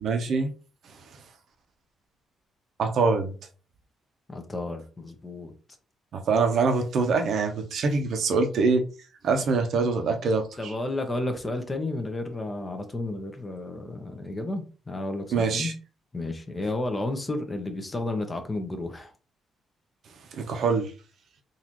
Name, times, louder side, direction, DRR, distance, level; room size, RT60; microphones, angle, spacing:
voice 1, 0.0-0.5 2.8-3.3 6.1-8.8 9.2-10.5 15.3-15.7 20.3-20.9, right 4 dB, 65° right, 5 dB, 0.8 m, -24 dB
voice 2, 4.3-5.5 10.6-15.7 16.1-19.1, left 2 dB, 25° left, 5 dB, 0.9 m, -32 dB
4.0 x 2.6 x 3.0 m, 0.36 s
cardioid pair, 90°, 0 cm